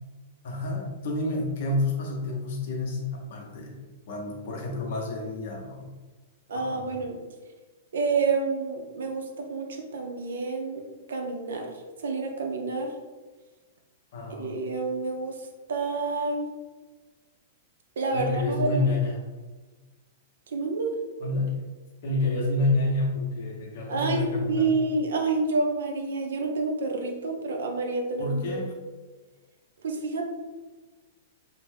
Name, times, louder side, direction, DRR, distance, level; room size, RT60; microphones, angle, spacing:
voice 1, 0.4-3.8 4.1-5.9 6.5-7.1 14.1-14.6 18.1-19.1 21.2-21.5 22.0-24.7 28.2-28.7, left 2 dB, 60° left, 0 dB, 0.6 m, -29 dB
voice 2, 6.5-7.2 7.9-10.8 11.1-11.7 12.0-12.9 14.4-15.3 15.7-16.5 18.0-18.9 20.5-20.9 23.9-28.6 29.8-30.3, right 3 dB, 75° right, 2 dB, 0.5 m, -28 dB
2.5 x 2.0 x 3.2 m, 1.3 s
hypercardioid pair, 110°, 0 cm